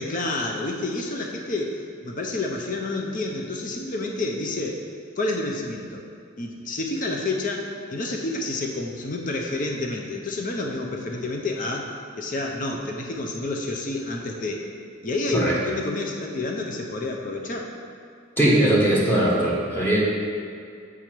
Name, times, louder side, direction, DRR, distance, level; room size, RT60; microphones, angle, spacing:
voice 1, 0.0-4.8 5.2-6.0 6.4-11.9 12.2-14.6 15.0-17.7, left 2 dB, 40° left, 1 dB, 0.6 m, -29 dB
voice 2, 18.4-20.0, right 1 dB, 10° left, -6 dB, 1.2 m, -20 dB
6.9 x 4.9 x 4.5 m, 2.3 s
head